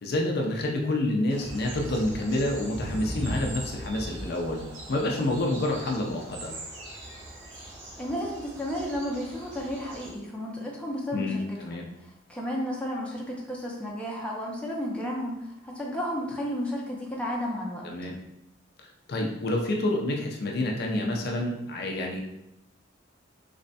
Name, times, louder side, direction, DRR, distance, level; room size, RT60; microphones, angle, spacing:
voice 1, 0.0-4.6 4.9-6.5 11.1-11.9 17.8-18.2 19.1-22.2, left 1 dB, 55° left, 1 dB, 0.5 m, -28 dB
sound 1, 1.3-10.1, right 1 dB, 70° right, 0.8 m, -39 dB
voice 2, 8.0-11.8 12.3-17.8, equal, 5° left, -3 dB, 0.6 m, -32 dB
3.3 x 3.2 x 2.7 m, 0.84 s
head